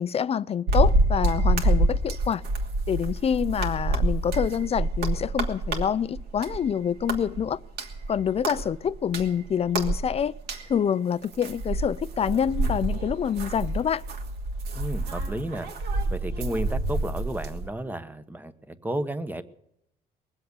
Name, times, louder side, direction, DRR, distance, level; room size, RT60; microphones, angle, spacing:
voice 1, 0.0-2.4 2.9-7.6 8.1-10.3 10.7-14.0, left 8 dB, 35° left, 0.5 m, -26 dB
sound 1, 0.7-6.7 7.0-10.7 11.2-17.7, right 2 dB, 75° right, 2.8 m, -27 dB
voice 2, 14.7-15.7 16.1-19.4, right 1 dB, 10° right, 1.2 m, -32 dB
21.5 x 7.8 x 8.2 m
cardioid pair, 110°, 17 cm